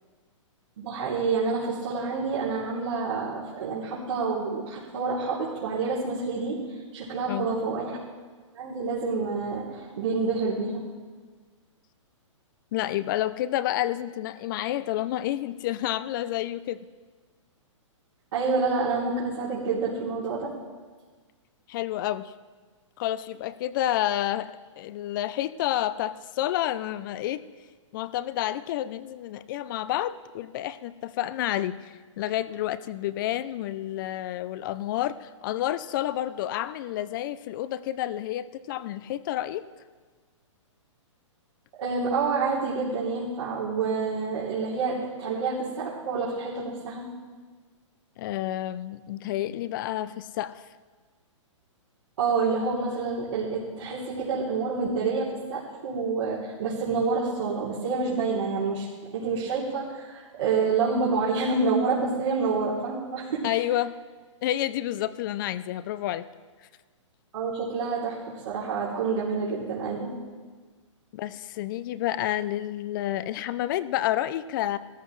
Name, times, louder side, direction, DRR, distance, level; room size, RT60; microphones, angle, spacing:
voice 1, 0.8-6.6 6.9-8.0 8.5-10.9 18.3-20.5 41.8-47.1 52.2-58.9 59.1-63.4 67.3-70.1, right 4 dB, 65° right, -9 dB, 3.2 m, -28 dB
voice 2, 12.7-16.8 21.7-22.3 23.0-27.5 27.9-39.6 48.2-50.7 63.4-63.9 64.4-66.2 71.1-74.8, left 13 dB, 40° left, 15 dB, 0.5 m, -29 dB
16.0 x 14.0 x 3.2 m, 1.4 s
hypercardioid pair, 135°, 16 cm